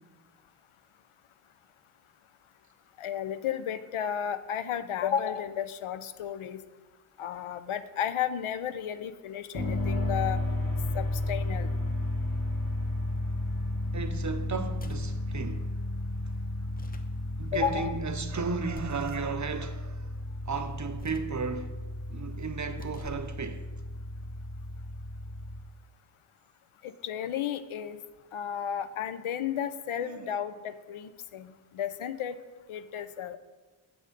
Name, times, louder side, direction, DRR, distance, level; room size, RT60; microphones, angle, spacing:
voice 1, 3.0-6.6 7.2-10.4 10.9-11.7 17.5-17.9 26.8-28.0 28.3-32.4 32.7-33.4, left 9 dB, 80° left, 0.6 m, -33 dB
sound 1, 9.5-25.6, left 1 dB, 45° left, 1.6 m, -33 dB
voice 2, 13.9-15.6 17.4-19.9 20.5-21.7 22.1-23.6, right 5 dB, 35° right, 0.6 m, -34 dB
sound 2, 14.7-15.2 16.6-17.2 18.7-19.3 20.9-21.4 22.6-23.4, left 2 dB, 20° left, 0.6 m, -49 dB
7.6 x 6.2 x 5.1 m
wide cardioid pair, 80°, 49 cm